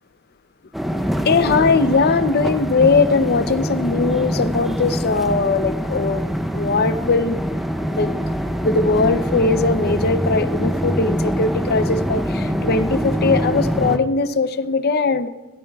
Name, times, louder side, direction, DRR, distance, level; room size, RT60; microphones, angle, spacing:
sound 1, 0.7-14.0, equal, ahead, 0.6 m, -24 dB
voice 1, 1.2-7.4 7.9-8.1 8.6-15.3, left 4 dB, 45° left, 12 dB, 0.6 m, -20 dB
26.5 x 12.5 x 2.3 m, 1.1 s
head